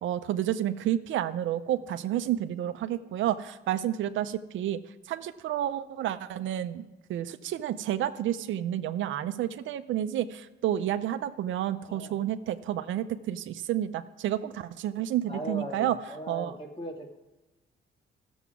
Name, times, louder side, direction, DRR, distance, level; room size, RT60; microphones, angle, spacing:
voice 1, 0.0-4.8 5.1-16.0 16.3-16.5, right 11 dB, 75° right, 11 dB, 0.6 m, -30 dB
voice 2, 15.3-17.1, equal, 30° left, 0 dB, 2.5 m, -38 dB
14.5 x 7.1 x 5.9 m, 1.1 s
cardioid pair, 90°, 20 cm